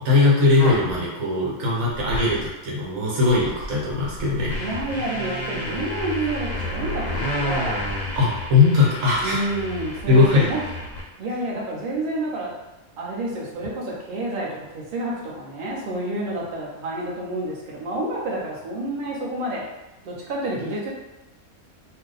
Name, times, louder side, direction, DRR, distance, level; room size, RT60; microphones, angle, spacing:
voice 1, 0.0-4.5 8.1-9.4 10.1-10.5, left 3 dB, 75° right, -5 dB, 1.4 m, -19 dB
sound 1, 0.6-1.0 1.9-2.5 2.9-3.0 3.3-11.0, left 1 dB, 50° left, 0.5 m, -30 dB
voice 2, 4.6-7.8 9.2-10.6 11.2-12.5 13.0-19.7 20.0-20.9, right 2 dB, 45° right, -4 dB, 0.8 m, -29 dB
2.6 x 2.2 x 3.9 m, 1.0 s
omnidirectional pair, 1.5 m